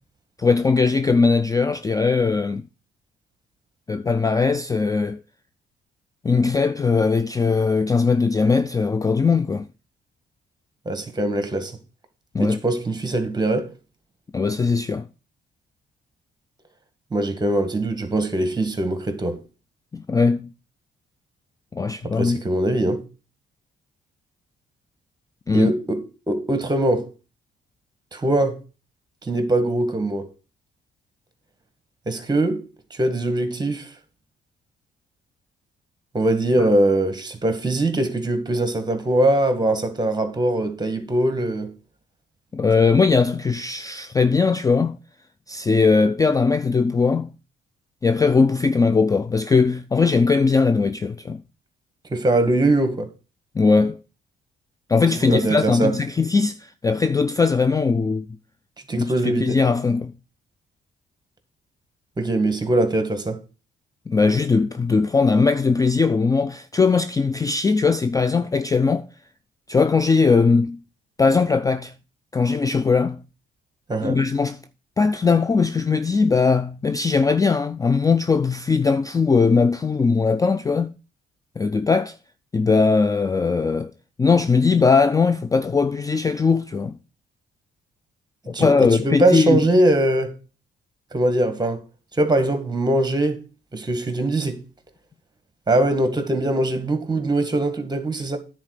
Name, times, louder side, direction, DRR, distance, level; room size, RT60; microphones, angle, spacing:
voice 1, 0.4-2.7 3.9-5.2 6.2-9.7 12.3-12.6 14.3-15.1 19.9-20.5 21.7-22.4 25.5-25.7 42.5-45.0 45.5-47.3 48.0-51.4 53.6-54.0 54.9-58.3 59.0-60.1 64.1-69.1 69.7-70.8 71.2-71.9 72.3-73.2 74.0-74.6 75.0-80.9 81.6-82.2 82.5-83.9 84.2-87.0 88.5-89.6, left 4 dB, 20° left, 0.4 m, -19 dB
voice 2, 10.9-11.7 12.4-13.7 17.1-19.4 22.0-23.0 25.5-27.1 28.1-28.6 29.2-30.3 32.1-32.6 32.9-33.9 36.1-41.7 52.1-53.1 55.2-55.9 58.9-59.6 62.2-63.4 73.9-74.2 88.5-90.3 91.1-91.8 92.2-93.4 93.7-94.6 95.7-98.4, right 1 dB, 20° right, 1.8 m, -22 dB
9.8 x 4.2 x 6.5 m
cardioid pair, 90°, 20 cm